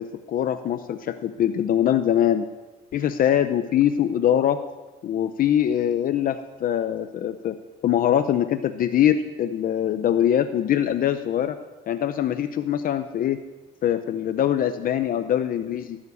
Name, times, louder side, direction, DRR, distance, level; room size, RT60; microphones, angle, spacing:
voice 1, 0.0-2.5 2.9-4.6 5.0-7.6 7.8-11.6 11.9-13.4 13.8-16.0, left 10 dB, 50° left, 9 dB, 0.7 m, -23 dB
16.0 x 7.4 x 8.3 m, 1.2 s
cardioid pair, 150°, 19 cm